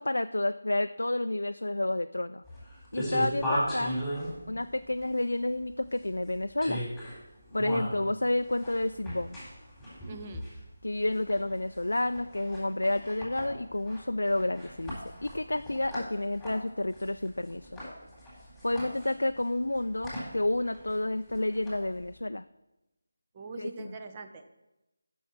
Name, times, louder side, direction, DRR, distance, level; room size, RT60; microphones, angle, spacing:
voice 1, 0.0-2.4 2.9-3.9 4.5-6.8 7.5-9.4 10.8-17.8 18.6-22.4 23.6-23.9, left 1 dB, 90° left, 9 dB, 0.3 m, -30 dB
sound 1, 2.4-22.2, equal, ahead, 3.7 m, -38 dB
voice 2, 10.1-10.4 23.3-24.5, right 3 dB, 25° right, 6 dB, 0.8 m, -42 dB
8.7 x 6.3 x 5.8 m, 0.97 s
figure-of-eight pair, 165°, 0 cm